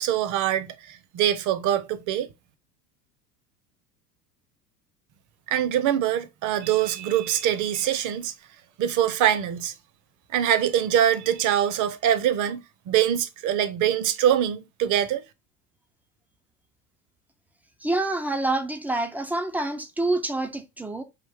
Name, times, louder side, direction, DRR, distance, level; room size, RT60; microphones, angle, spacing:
voice 1, 0.0-2.3 5.5-8.3 8.8-9.7 10.3-12.6 12.9-15.2, right 10 dB, 40° right, 0.7 m, -23 dB
voice 2, 17.8-21.0, right 2 dB, 5° right, 0.4 m, -27 dB
4.9 x 2.6 x 3.4 m
hypercardioid pair, 80°, 48 cm